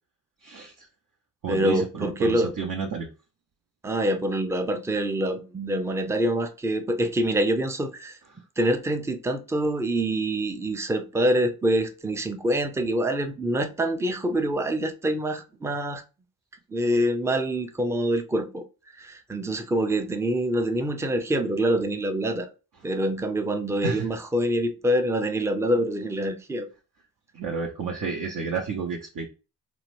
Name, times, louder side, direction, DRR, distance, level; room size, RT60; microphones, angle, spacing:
voice 1, 0.4-0.9 1.4-3.1 23.8-24.1 27.3-29.3, right 5 dB, 50° right, 0.7 m, -31 dB
voice 2, 1.5-2.5 3.8-8.2 8.6-16.0 16.7-18.6 19.0-22.5 22.8-26.7, right 1 dB, 5° right, 0.4 m, -25 dB
2.8 x 2.1 x 3.1 m
supercardioid pair, 50°, 43 cm